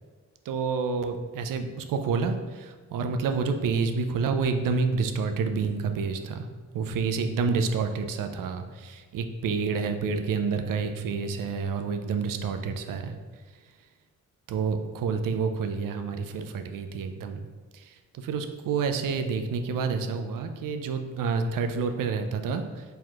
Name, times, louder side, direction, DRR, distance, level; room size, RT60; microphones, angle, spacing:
voice 1, 0.5-6.5 6.7-13.1 14.5-17.4 17.7-22.8, right 5 dB, 65° right, 6 dB, 0.5 m, -28 dB
4.2 x 3.2 x 2.4 m, 1.5 s
supercardioid pair, 45°, 35 cm